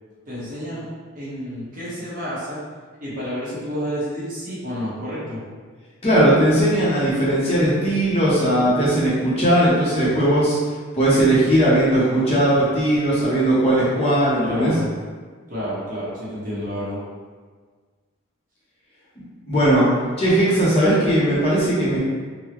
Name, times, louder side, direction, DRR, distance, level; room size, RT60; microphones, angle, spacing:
voice 1, 0.3-0.8 1.1-2.6 3.0-5.4 14.4-14.9 15.5-17.0, equal, 40° right, -9 dB, 1.0 m, -30 dB
voice 2, 6.0-10.6 10.9-14.7 19.5-19.9 20.2-22.0, right 1 dB, 30° left, -8 dB, 0.6 m, -18 dB
3.6 x 2.0 x 2.9 m, 1.5 s
head